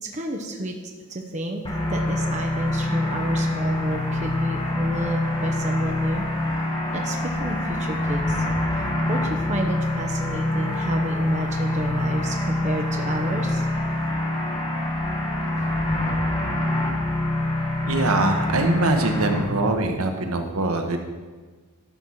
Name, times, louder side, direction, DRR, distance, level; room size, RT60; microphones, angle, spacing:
voice 1, 0.0-0.8 1.1-6.2 6.9-8.4 8.7-13.7, right 1 dB, 30° right, 2 dB, 0.8 m, -30 dB
sound 1, 1.6-19.4, left 1 dB, 20° left, 1.1 m, -25 dB
voice 2, 17.8-21.0, right 2 dB, 75° right, 5 dB, 1.0 m, -23 dB
12.0 x 4.3 x 6.3 m, 1.4 s
head